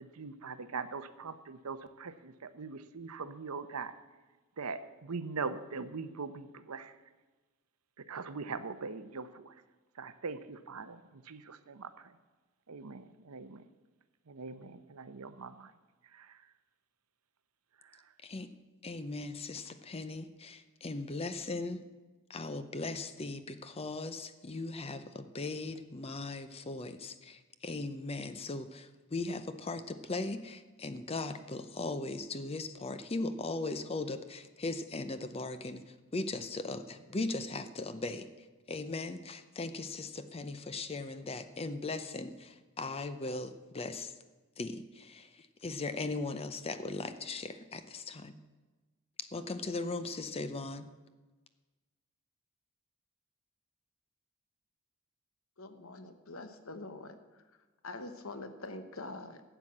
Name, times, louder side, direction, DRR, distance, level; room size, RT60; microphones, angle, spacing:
voice 1, 0.0-3.9 4.6-6.9 8.0-9.6 9.9-12.2 12.7-13.6 14.3-15.7 16.0-16.4 17.8-18.1, right 4 dB, 85° right, 12 dB, 0.8 m, -42 dB
voice 2, 18.8-21.8 22.3-38.3 38.7-44.1 44.6-48.4 49.2-50.8, left 3 dB, 25° left, 11 dB, 0.6 m, -38 dB
voice 3, 55.6-57.1 57.8-59.4, left 2 dB, 65° left, 9 dB, 1.1 m, -44 dB
12.0 x 8.1 x 7.3 m, 1.3 s
head